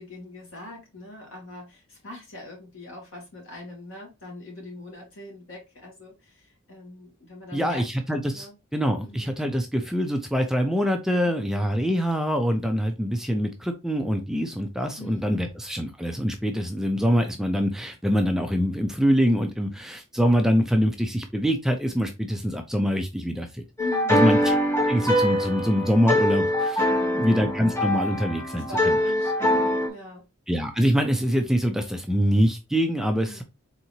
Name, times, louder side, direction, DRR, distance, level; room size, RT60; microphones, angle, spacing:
voice 1, 0.0-7.8 8.3-8.6 9.0-9.3 11.2-11.8 15.0-15.6 23.8-24.2 26.8-27.3 28.5-30.2 33.2-33.4, left 2 dB, 70° left, -1 dB, 2.6 m, -42 dB
voice 2, 7.5-23.6 24.1-26.8 27.1-29.0 30.5-33.4, equal, ahead, 5 dB, 0.4 m, -24 dB
sound 1, 23.8-29.9, left 1 dB, 15° left, 0.9 m, -23 dB
4.3 x 3.7 x 2.7 m, 0.25 s
head